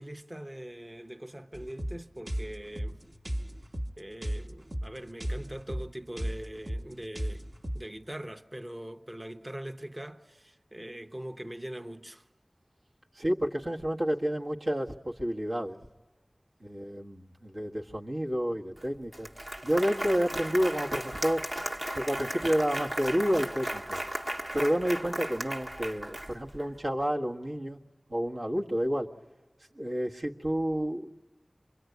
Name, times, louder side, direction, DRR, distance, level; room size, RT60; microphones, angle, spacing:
voice 1, 0.0-3.0 4.0-7.4 7.7-12.2, right 1 dB, 30° right, 0.8 m, -42 dB
sound 1, 1.5-7.8, equal, 70° right, 1.4 m, -36 dB
voice 2, 13.1-15.8 16.6-19.3 19.6-21.4 21.9-24.0 24.5-27.8 28.1-29.1 29.7-31.1, equal, 90° right, 1.6 m, -30 dB
Applause, 18.8-18.9 19.1-26.7, right 1 dB, 45° right, 1.2 m, -36 dB
27.0 x 23.5 x 9.3 m
wide cardioid pair, 50°, 0 cm